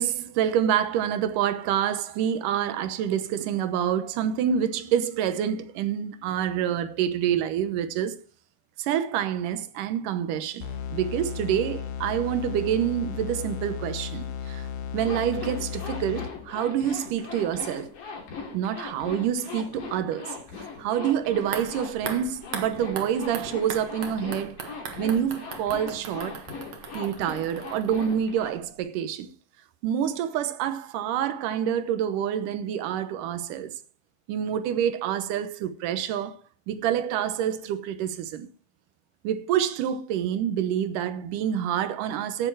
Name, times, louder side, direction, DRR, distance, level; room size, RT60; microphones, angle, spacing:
voice 1, 0.0-8.1 8.8-14.7 14.9-17.9 18.5-20.4 20.8-24.5 25.0-26.4 26.9-29.3 29.8-33.7 34.3-36.4 36.7-38.5 39.2-42.5, right 9 dB, 80° right, 2.6 m, -27 dB
sound 1, 10.6-16.6, left 8 dB, 70° left, 2.7 m, -35 dB
Zipper (clothing), 15.0-28.5, left 5 dB, 85° left, 4.8 m, -39 dB
sound 2, 21.4-28.5 28.8-28.9, right 6 dB, 60° right, 2.5 m, -39 dB
15.5 x 6.9 x 4.6 m
omnidirectional pair, 3.7 m